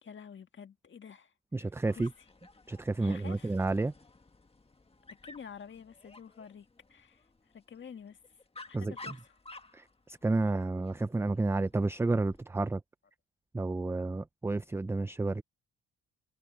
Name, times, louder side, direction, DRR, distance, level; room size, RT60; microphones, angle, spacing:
voice 1, 0.0-1.3 1.6-1.7 2.0-2.1 3.0-3.6 5.1-7.3 7.5-8.2 8.7-9.3, left 7 dB, 40° left, 1.8 m, -49 dB
voice 2, 1.5-2.1 2.7-3.9 8.7-9.2 9.7-12.8 13.5-15.4, right 2 dB, 10° right, 0.4 m, -31 dB
Dog, 1.8-12.4, left 2 dB, 20° left, 1.7 m, -54 dB
cardioid pair, 90°, 30 cm